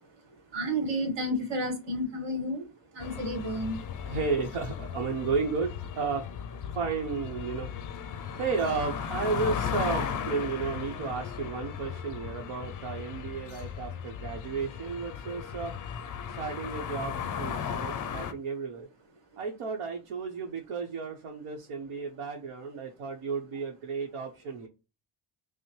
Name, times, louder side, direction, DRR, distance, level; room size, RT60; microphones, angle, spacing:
voice 1, 0.3-2.7 2.9-3.8, equal, 60° right, 3 dB, 1.7 m, -31 dB
sound 1, 3.0-18.3, left 7 dB, 40° left, 0.4 m, -36 dB
voice 2, 4.0-6.3 6.7-7.7 8.4-15.7 16.3-18.9 19.4-24.7, right 4 dB, 90° right, 1 dB, 0.9 m, -33 dB
5.5 x 2.0 x 3.1 m, 0.29 s
cardioid pair, 150°, 49 cm